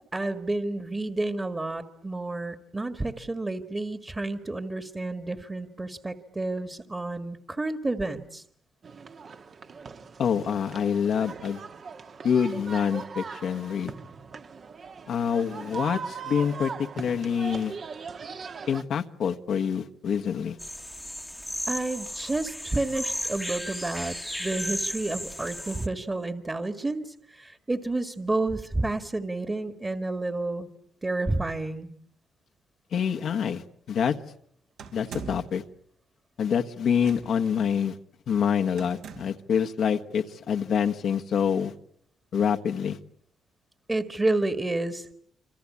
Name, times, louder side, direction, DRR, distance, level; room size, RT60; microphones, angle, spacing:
voice 1, 0.1-8.4 21.7-30.7 31.0-31.9 43.9-45.1, right 2 dB, 20° right, 9 dB, 1.9 m, -30 dB
sound 1, 8.8-18.8, right 5 dB, 45° right, 1.5 m, -40 dB
voice 2, 10.2-11.6 12.2-13.9 15.1-17.8 18.7-20.6 32.9-34.2 34.9-35.6 36.4-38.0 38.3-41.7 42.3-43.0, left 7 dB, 65° left, 5 dB, 1.4 m, -26 dB
sound 2, 20.6-25.9, equal, ahead, 1.3 m, -35 dB
sound 3, 34.8-35.6 37.0-37.5 38.8-39.5, right 6 dB, 80° right, 4.0 m, -41 dB
27.0 x 26.0 x 8.5 m, 0.69 s
cardioid pair, 90°, 0 cm